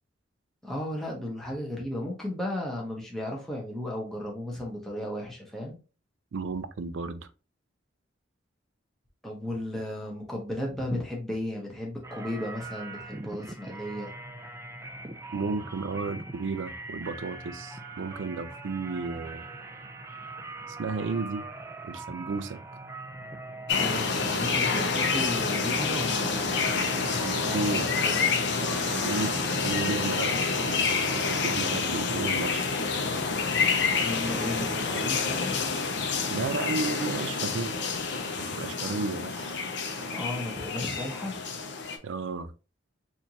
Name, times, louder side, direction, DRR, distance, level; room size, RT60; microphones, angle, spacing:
voice 1, 0.6-5.8 9.2-14.1 23.8-28.3 34.0-35.5 40.0-41.4, left 1 dB, ahead, 0.8 m, -35 dB
voice 2, 6.3-7.3 15.3-19.5 20.7-21.4 21.8-22.6 27.2-27.9 28.6-32.6 36.3-37.7 38.4-39.6 42.0-42.5, right 4 dB, 75° right, 0.4 m, -33 dB
sound 1, 12.0-30.9, right 2 dB, 15° right, 0.4 m, -42 dB
sound 2, 23.7-42.0, left 4 dB, 65° left, 0.7 m, -28 dB
4.3 x 2.6 x 2.9 m
head